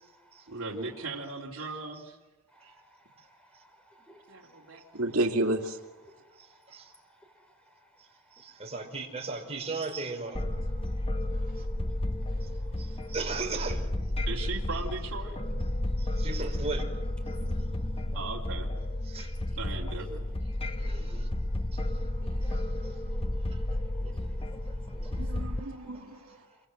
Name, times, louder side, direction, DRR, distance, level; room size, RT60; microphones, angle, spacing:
voice 1, 0.5-2.2 4.3-4.8 14.3-15.4 18.1-18.7 19.5-20.2, right 3 dB, 70° right, -3 dB, 3.2 m, -37 dB
voice 2, 4.9-5.8 25.2-26.4, right 1 dB, 85° right, 4 dB, 2.3 m, -30 dB
voice 3, 6.4-6.9 8.4-10.4 12.4-12.5 12.8-13.9 14.4-14.5 16.0-16.8 19.1-19.3 20.8-21.3 21.7-21.8 22.4-22.9 23.4-23.6 25.9-26.0, right 3 dB, 30° right, 1 dB, 5.0 m, -37 dB
sound 1, 10.4-25.6, left 1 dB, 25° left, 1.0 m, -32 dB
voice 4, 17.3-17.6 18.1-18.3 22.4-23.2 24.0-25.9, equal, 5° left, 4 dB, 5.2 m, -54 dB
28.0 x 24.5 x 7.8 m, 1.2 s
head